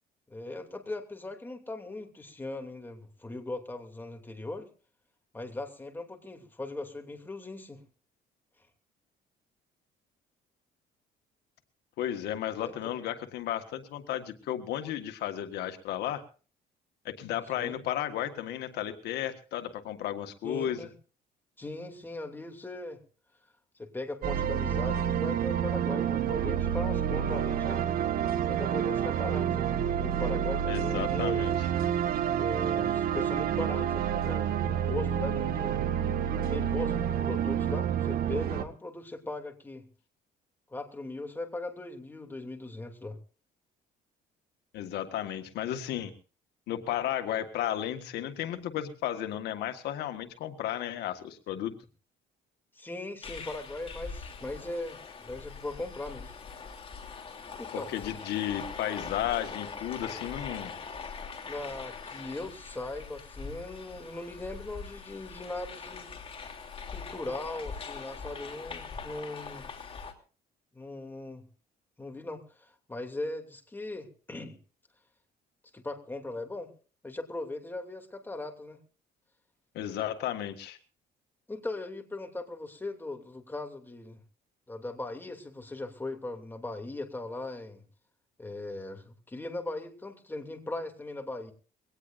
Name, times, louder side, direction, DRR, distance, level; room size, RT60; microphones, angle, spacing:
voice 1, 0.3-4.7 5.3-7.8 12.6-12.7 17.6-17.8 20.4-20.9 21.6-23.0 23.8-27.9 28.5-31.5 32.4-35.9 36.3-39.9 40.7-43.2 52.8-56.3 57.6-57.9 61.4-66.1 66.9-69.7 70.7-71.5 72.0-74.6 75.7-76.7 77.0-78.8 81.5-84.2 84.7-87.8 88.4-91.5, left 2 dB, 10° left, 4 dB, 2.8 m, -39 dB
voice 2, 12.0-16.2 17.0-20.9 30.7-31.7 44.7-46.1 46.7-51.7 57.7-60.7 79.7-80.8, left 11 dB, 80° left, 8 dB, 1.6 m, -34 dB
sound 1, 24.2-38.6, right 9 dB, 60° right, 1.4 m, -29 dB
sound 2, 53.2-70.1, left 5 dB, 35° left, 3.1 m, -42 dB
22.5 x 18.0 x 2.6 m, 0.38 s
cardioid pair, 110°, 17 cm